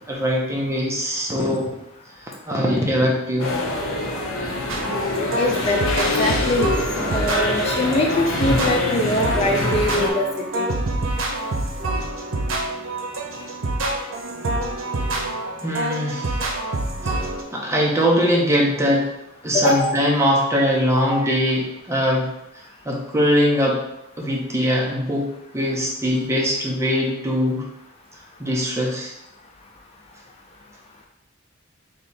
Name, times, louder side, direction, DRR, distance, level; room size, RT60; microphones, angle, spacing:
voice 1, 0.1-1.6 2.5-3.6 7.0-7.2 15.6-16.3 17.0-17.2 17.5-19.1 19.4-22.3 22.8-23.8 24.2-27.6 28.4-29.1, equal, 15° right, -2 dB, 0.7 m, -21 dB
sound 1, 3.4-10.1, left 2 dB, 80° left, 0.7 m, -25 dB
sound 2, 4.7-17.4, right 2 dB, 85° right, 0.7 m, -27 dB
voice 2, 5.3-6.8 7.1-10.3 10.5-10.7 19.5-19.9 21.1-21.3, left 1 dB, 30° left, 1 dB, 0.4 m, -23 dB
3.3 x 2.8 x 4.1 m, 0.82 s
head